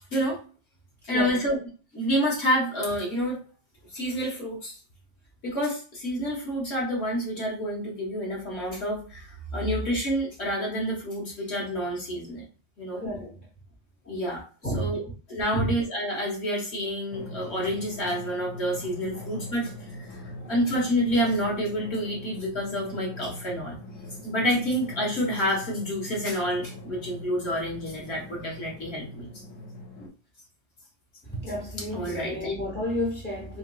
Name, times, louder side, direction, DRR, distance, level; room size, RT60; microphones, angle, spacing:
voice 1, 1.0-1.6 1.9-3.4 3.9-4.8 5.4-12.4 12.8-13.0 14.1-14.4 14.7-15.0 15.3-19.7 20.1-23.7 24.2-29.3 30.0-30.1 31.9-32.5, equal, 60° left, 1.4 m, -28 dB
voice 2, 13.0-13.5 14.0-14.2 14.6-15.0 15.5-15.7 19.1-19.3 20.4-20.5 31.2-33.6, equal, 10° left, 0.6 m, -31 dB
Drum, 17.1-30.1, left 1 dB, 80° left, 1.2 m, -41 dB
3.1 x 2.9 x 2.3 m
omnidirectional pair, 1.3 m